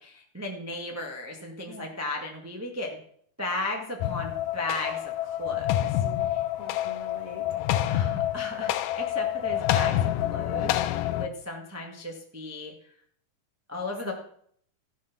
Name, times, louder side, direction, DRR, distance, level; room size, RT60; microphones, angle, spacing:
voice 1, 0.0-3.0 3.4-5.9 6.3-6.4 7.9-12.7 13.7-14.1, left 2 dB, 15° right, 0 dB, 0.5 m, -35 dB
sound 1, 4.0-11.3, left 13 dB, 90° left, 2.3 m, -27 dB
voice 2, 5.8-6.3 6.6-7.4 14.0-14.1, left 3 dB, 40° left, 1 dB, 1.3 m, -44 dB
15.0 x 6.5 x 6.0 m, 0.63 s
omnidirectional pair, 3.8 m